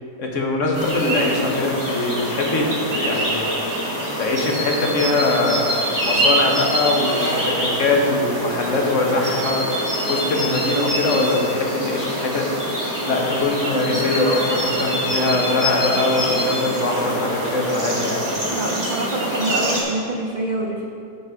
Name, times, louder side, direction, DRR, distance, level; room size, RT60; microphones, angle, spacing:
voice 1, 0.2-3.5 4.2-5.8 6.0-9.7 10.0-12.5 13.0-18.2, left 2 dB, 60° left, 0 dB, 1.4 m, -22 dB
sound 1, 0.7-19.8, equal, 25° right, 2.4 m, -24 dB
voice 2, 18.5-20.9, right 2 dB, 60° right, 1 dB, 0.4 m, -26 dB
11.0 x 5.3 x 4.7 m, 2.6 s
omnidirectional pair, 1.6 m